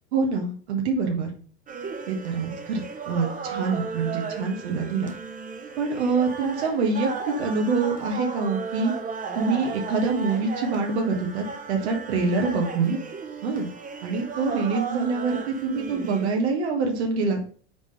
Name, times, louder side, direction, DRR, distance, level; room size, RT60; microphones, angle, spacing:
voice 1, 0.1-1.3 2.1-5.1 5.8-8.9 9.3-13.0 13.4-13.7 14.0-17.4, right 4 dB, 75° right, 2 dB, 1.4 m, -25 dB
sound 1, 1.7-16.3, right 4 dB, 25° right, 1.0 m, -35 dB
4.7 x 3.8 x 5.6 m, 0.43 s
hypercardioid pair, 100°, 33 cm